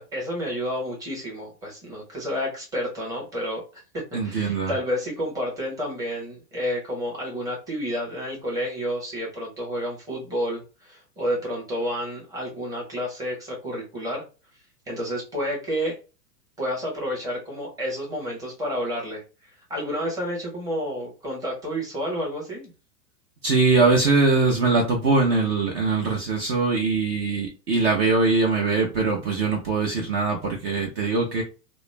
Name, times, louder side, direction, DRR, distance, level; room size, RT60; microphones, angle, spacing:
voice 1, 0.0-3.6 3.9-14.2 14.9-16.0 16.6-19.2 19.7-22.7, equal, 5° right, 0.9 m, -30 dB
voice 2, 4.1-4.7 23.4-31.4, right 3 dB, 40° right, 0.7 m, -22 dB
2.3 x 2.0 x 3.2 m
hypercardioid pair, 140°, 48 cm